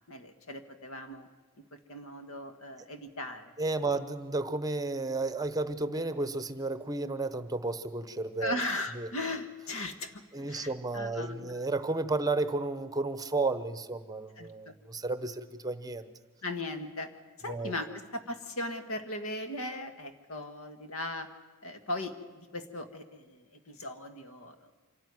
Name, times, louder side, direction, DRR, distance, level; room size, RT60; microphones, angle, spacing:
voice 1, 0.1-1.3 1.7-3.5 8.4-11.7 14.4-14.7 16.4-17.1 17.4-21.3 21.6-24.7, left 1 dB, 70° left, 8 dB, 1.6 m, -38 dB
voice 2, 3.6-8.6 8.9-9.1 10.3-16.0 17.5-17.7, right 3 dB, 15° right, 11 dB, 0.9 m, -32 dB
25.5 x 12.5 x 9.6 m, 1.3 s
head